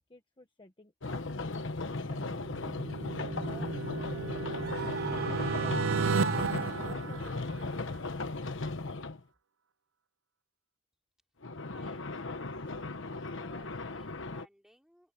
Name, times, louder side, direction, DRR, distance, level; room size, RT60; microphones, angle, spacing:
voice 1, 0.0-2.5 3.2-5.8 6.3-7.9, left 2 dB, 25° left, 1.2 m, -54 dB
sound 1, 1.0-9.2 11.4-14.5, left 3 dB, 65° left, 1.2 m, -37 dB
sound 2, 2.2-8.0, right 4 dB, 70° right, 0.6 m, -34 dB
Screaming, 4.6-7.3, right 4 dB, 50° right, 1.4 m, -38 dB
voice 2, 11.7-12.6 13.0-15.1, equal, ahead, 4.3 m, -62 dB
open air
head